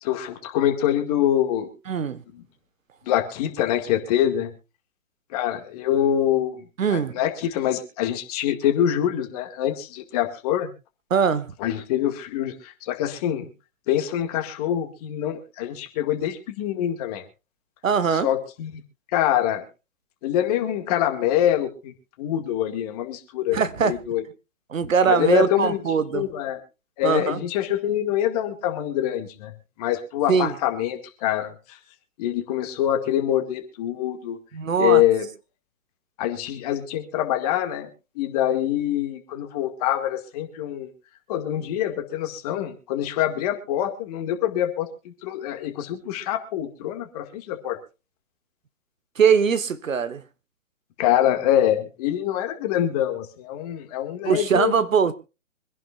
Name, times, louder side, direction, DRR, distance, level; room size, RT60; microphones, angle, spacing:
voice 1, 0.0-1.7 3.1-4.5 5.3-6.6 6.9-10.7 11.6-13.5 13.9-17.2 18.1-18.8 19.1-19.6 20.2-21.9 22.2-24.2 25.1-25.8 26.1-26.6 27.0-29.5 29.8-31.8 32.2-34.4 34.8-35.3 36.2-37.9 38.2-40.9 41.3-47.8 51.0-54.8, left 11 dB, 30° left, 2.0 m, -25 dB
voice 2, 1.9-2.2 6.8-7.1 11.1-11.5 17.8-18.3 23.5-23.9 24.7-26.3 27.0-27.4 30.3-30.5 34.5-35.0 49.2-50.2 54.2-55.1, right 6 dB, 70° right, 1.4 m, -21 dB
25.0 x 11.0 x 2.4 m
hypercardioid pair, 145°, 41 cm